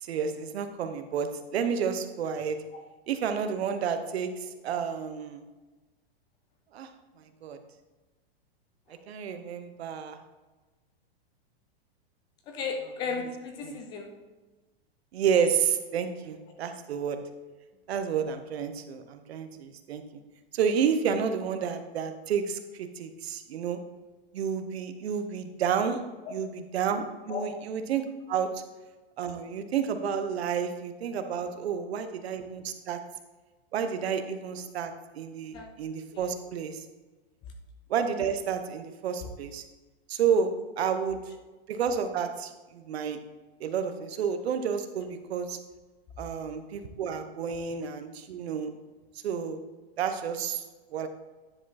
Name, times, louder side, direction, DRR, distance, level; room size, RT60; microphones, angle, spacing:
voice 1, 0.0-2.6 3.1-5.4 6.7-6.9 7.2-7.6 9.1-10.2 13.6-13.8 15.1-17.2 17.9-20.0 20.5-23.8 24.3-26.0 26.3-28.6 29.2-33.0 33.7-36.8 37.9-39.6 40.1-41.2 41.7-43.2 43.6-45.6 46.2-48.7 49.2-49.6 50.0-50.6 50.9-51.1, right 7 dB, 80° right, 8 dB, 1.0 m, -30 dB
voice 2, 12.5-14.1 26.2-26.3 27.3-27.4 35.5-35.7 36.1-36.3 40.8-40.9 47.5-47.6, left 5 dB, 15° left, 4 dB, 0.4 m, -35 dB
9.9 x 5.1 x 4.1 m, 1.2 s
supercardioid pair, 170°, 31 cm